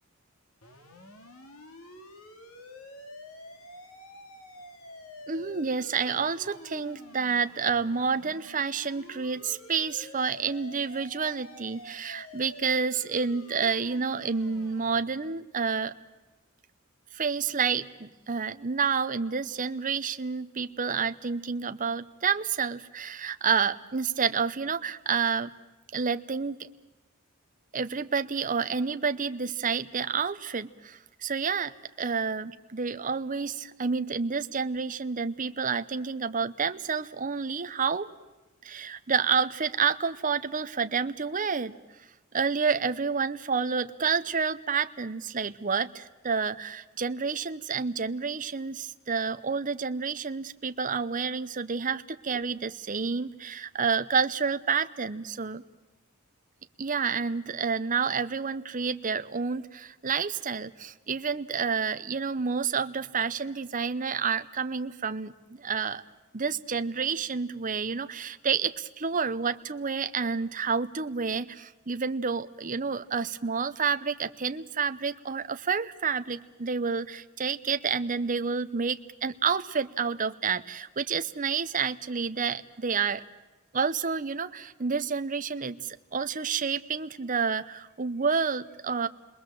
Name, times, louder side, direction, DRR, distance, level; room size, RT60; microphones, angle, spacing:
sound 1, 0.6-15.0, left 1 dB, 75° left, 2.6 m, -48 dB
voice 1, 5.3-15.9 17.1-25.5 25.9-26.6 27.7-31.7 32.0-38.1 38.6-41.7 42.3-55.6 56.8-66.0 66.3-83.2 83.7-89.1, right 5 dB, 40° right, 10 dB, 0.9 m, -29 dB
30.0 x 21.0 x 7.7 m, 1.1 s
head